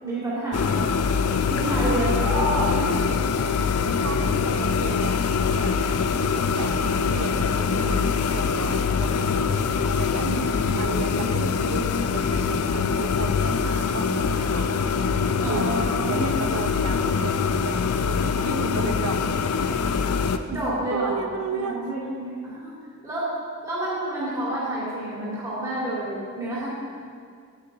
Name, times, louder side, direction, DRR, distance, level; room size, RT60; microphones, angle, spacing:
voice 1, 0.0-0.8 1.4-3.0 10.2-10.5 15.4-16.4 20.5-22.7 23.0-23.3 23.6-26.7, right 1 dB, 15° right, -9 dB, 2.7 m, -29 dB
sound 1, 0.5-20.4, left 5 dB, 85° left, 0.5 m, -24 dB
voice 2, 1.9-2.3 4.0-5.8 6.6-10.3 10.7-14.9 15.4-15.8 16.1-19.2 19.7-19.8 20.9-21.8, right 4 dB, 75° right, 6 dB, 0.8 m, -34 dB
9.9 x 8.8 x 4.0 m, 2.2 s
head